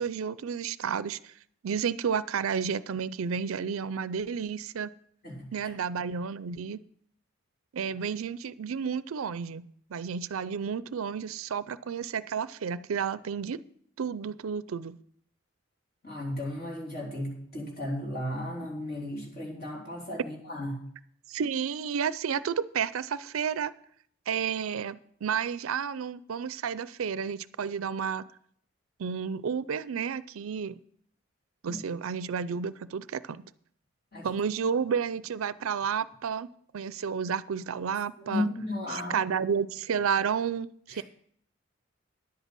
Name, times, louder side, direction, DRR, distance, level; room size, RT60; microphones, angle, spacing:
voice 1, 0.0-1.3 1.6-4.9 5.5-6.8 7.7-13.6 14.0-15.0 21.3-23.7 24.3-28.3 29.0-30.8 31.6-33.4 34.2-38.5 38.9-41.0, right 6 dB, 90° right, 17 dB, 0.5 m, -31 dB
voice 2, 5.2-5.7 16.0-20.8 31.6-31.8 34.1-34.3 38.2-39.2 40.9-41.0, left 1 dB, 45° left, -1 dB, 3.3 m, -35 dB
10.5 x 8.2 x 6.0 m, 0.64 s
head